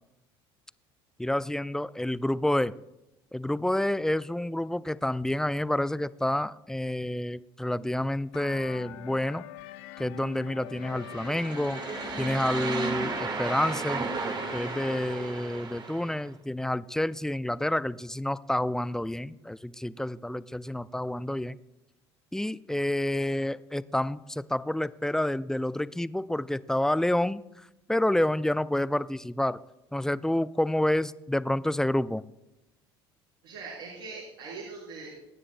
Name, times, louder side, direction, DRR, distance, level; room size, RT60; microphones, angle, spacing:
voice 1, 1.2-2.7 3.3-9.5 10.0-11.8 12.2-14.1 14.5-21.6 22.3-27.4 27.9-29.6 29.9-32.2, left 1 dB, 5° left, 17 dB, 0.3 m, -29 dB
sound 1, 8.3-15.0, left 14 dB, 70° left, 0.5 m, -44 dB
sound 2, 10.8-16.2, right 4 dB, 35° right, 1.7 m, -34 dB
voice 2, 33.4-35.2, right 4 dB, 75° right, -6 dB, 4.6 m, -42 dB
23.0 x 9.8 x 2.2 m, 0.92 s
hypercardioid pair, 65°, 14 cm